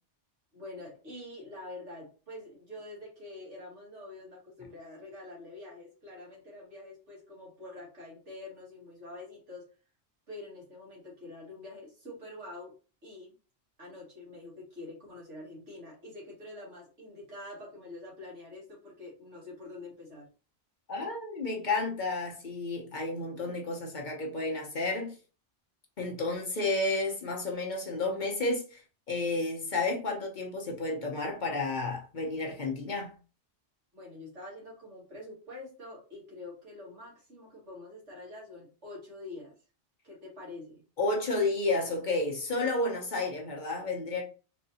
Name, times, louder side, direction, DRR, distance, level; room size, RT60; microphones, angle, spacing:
voice 1, 0.5-9.7 10.3-12.7 13.0-13.3 13.8-20.3 33.9-39.5 40.0-40.8, left 2 dB, 85° right, 2.2 m, -46 dB
voice 2, 20.9-25.2 26.0-33.1 41.0-44.2, left 2 dB, 45° left, 0.8 m, -31 dB
4.0 x 2.8 x 2.7 m
omnidirectional pair, 1.2 m